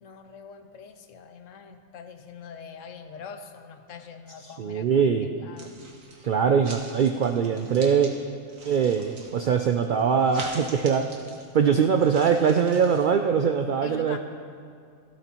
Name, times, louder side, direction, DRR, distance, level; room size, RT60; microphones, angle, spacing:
voice 1, 0.0-5.7 13.8-14.2, left 6 dB, 75° left, 7 dB, 1.1 m, -44 dB
voice 2, 4.6-5.3 6.2-8.1 8.6-11.1 11.5-14.2, right 6 dB, 70° right, 5 dB, 0.4 m, -22 dB
sound 1, 5.6-6.2 6.6-8.1 8.5-13.1, right 2 dB, 90° right, 1.8 m, -44 dB
14.5 x 13.5 x 3.0 m, 2.4 s
omnidirectional pair, 1.4 m